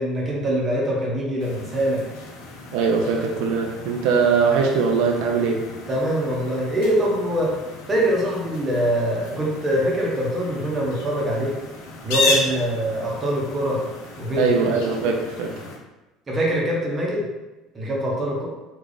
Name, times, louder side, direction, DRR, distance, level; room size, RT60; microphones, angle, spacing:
voice 1, 0.0-2.0 5.9-7.6 7.9-11.5 12.0-13.8 14.2-14.8 16.3-17.3 17.7-18.5, equal, 15° right, -3 dB, 0.7 m, -23 dB
sound 1, 1.4-15.8, left 3 dB, 80° left, 0.6 m, -33 dB
voice 2, 2.7-5.7 14.4-15.5, right 5 dB, 70° right, 1 dB, 0.5 m, -21 dB
3.3 x 2.4 x 3.8 m, 1.1 s
cardioid pair, 165°, 0 cm